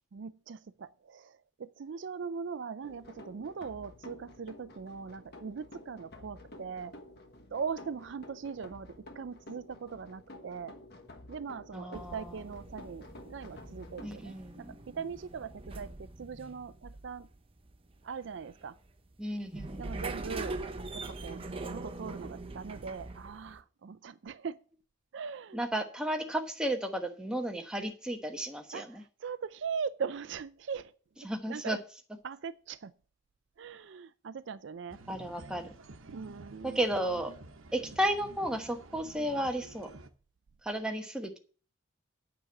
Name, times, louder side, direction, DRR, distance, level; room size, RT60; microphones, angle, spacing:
voice 1, 0.1-6.9 7.5-10.7 11.3-17.3 18.0-18.7 19.8-20.6 20.9-24.6 25.1-25.6 28.7-30.9 31.5-31.8 32.2-32.9 33.6-35.0 36.1-36.8, right 6 dB, 60° right, 0.4 m, -40 dB
sound 1, 2.8-14.2, left 1 dB, 55° left, 1.3 m, -51 dB
voice 2, 11.7-12.4 14.0-14.7 19.2-20.4 25.5-29.0 31.2-31.8 35.1-35.7 36.6-37.3 37.7-39.9 40.6-41.4, right 1 dB, 5° right, 1.1 m, -33 dB
sound 2, 11.9-23.6, right 2 dB, 25° right, 0.9 m, -43 dB
sound 3, 34.9-40.1, right 2 dB, 85° right, 1.0 m, -50 dB
9.2 x 6.1 x 7.0 m
head